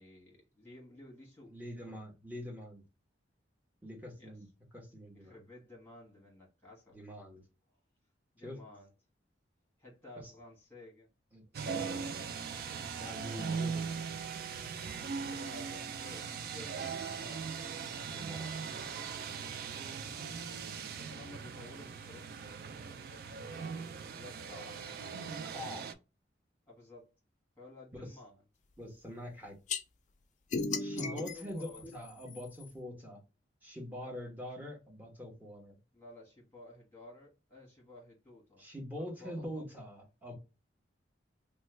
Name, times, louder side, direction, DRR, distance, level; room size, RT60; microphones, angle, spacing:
voice 1, 0.0-1.6 1.9-2.0 4.2-4.4 5.1-7.0 8.3-8.9 9.8-11.1 13.2-13.7 15.1-17.6 19.8-20.1 21.0-23.4 24.1-24.9 26.7-27.1 27.6-28.4 30.7-31.9 34.0-34.1 35.9-38.7 39.0-39.7, left 2 dB, 10° left, 1.2 m, -53 dB
voice 2, 1.5-2.8 3.8-4.5 4.7-5.4 6.9-7.4 8.4-8.6 10.2-10.3 11.3-12.2 13.0-14.1 18.1-18.7 25.4-25.9 28.0-28.1 28.8-29.6 30.8-33.2 33.6-35.8 38.6-40.3, equal, 10° right, 0.9 m, -44 dB
sound 1, 11.5-25.9, right 5 dB, 50° right, 0.3 m, -40 dB
sound 2, 29.7-29.8 30.5-32.7, left 4 dB, 40° left, 0.3 m, -37 dB
3.0 x 2.2 x 3.1 m
head